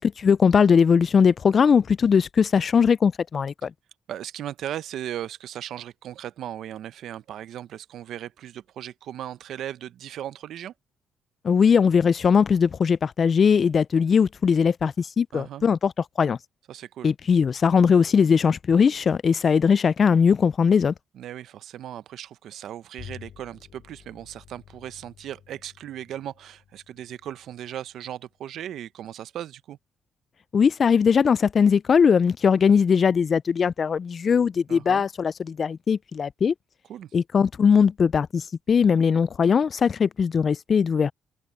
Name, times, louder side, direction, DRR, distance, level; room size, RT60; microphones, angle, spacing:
voice 1, 0.2-3.7 11.4-15.9 16.2-16.4 17.0-20.9 30.5-36.5 37.1-41.1, left 6 dB, 45° left, 0.3 m, -20 dB
voice 2, 4.1-10.7 15.3-15.6 16.7-17.1 21.1-29.8 34.7-35.1 36.9-37.1, right 11 dB, 75° right, 0.7 m, -37 dB
Bowed string instrument, 23.0-28.6, left 9 dB, 70° left, 2.1 m, -50 dB
open air
cardioid pair, 90°, 0 cm